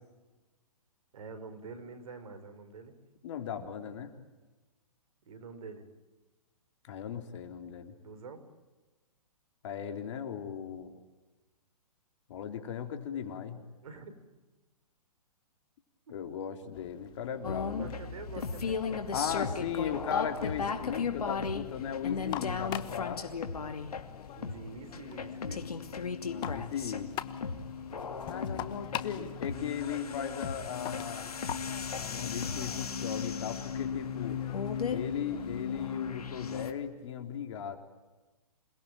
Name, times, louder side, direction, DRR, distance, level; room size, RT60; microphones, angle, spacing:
voice 1, 1.1-3.0 5.2-5.9 8.0-8.5 13.8-14.1 16.1-16.2 17.3-19.8 24.4-25.8, right 4 dB, 65° right, 10 dB, 5.0 m, -47 dB
voice 2, 3.2-4.1 6.9-7.9 9.6-10.9 12.3-13.6 16.1-18.0 19.1-23.2 26.2-27.1 28.3-31.3 32.0-34.4 34.9-37.8, left 8 dB, 50° left, 6 dB, 3.7 m, -37 dB
sound 1, 16.7-36.0, left 13 dB, 25° left, 1.1 m, -46 dB
sound 2, 17.4-36.7, left 6 dB, 75° left, 2.7 m, -36 dB
28.0 x 21.0 x 9.1 m, 1.2 s
hypercardioid pair, 130°, 19 cm